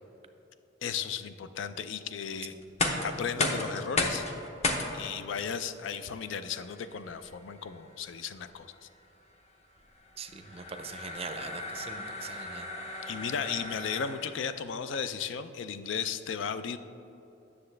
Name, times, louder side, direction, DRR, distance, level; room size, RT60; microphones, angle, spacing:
voice 1, 0.8-2.5 3.0-4.3 4.9-8.9 13.1-16.8, left 7 dB, 80° left, 11 dB, 0.4 m, -35 dB
sound 1, 2.6-14.5, left 2 dB, 35° left, 0.8 m, -36 dB
voice 2, 10.2-12.7, right 5 dB, 35° right, 8 dB, 0.5 m, -42 dB
9.5 x 6.8 x 3.3 m, 3.0 s
head